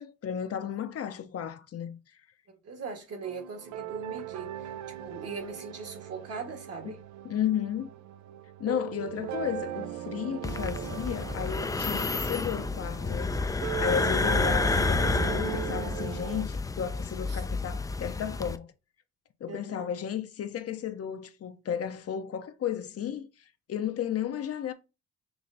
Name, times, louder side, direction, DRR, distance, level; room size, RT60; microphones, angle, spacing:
voice 1, 0.0-2.0 6.8-6.9 7.2-7.9 8.6-18.7 19.4-24.7, left 9 dB, 50° left, 0.6 m, -33 dB
voice 2, 2.5-4.7 5.0-7.0 17.3-17.4 19.5-19.9, right 4 dB, 55° right, 1.4 m, -40 dB
sound 1, 3.2-16.4, right 12 dB, 70° right, 0.5 m, -39 dB
sound 2, 10.4-18.6, left 3 dB, 10° left, 0.3 m, -30 dB
6.0 x 3.1 x 2.6 m
cardioid pair, 90°, 30 cm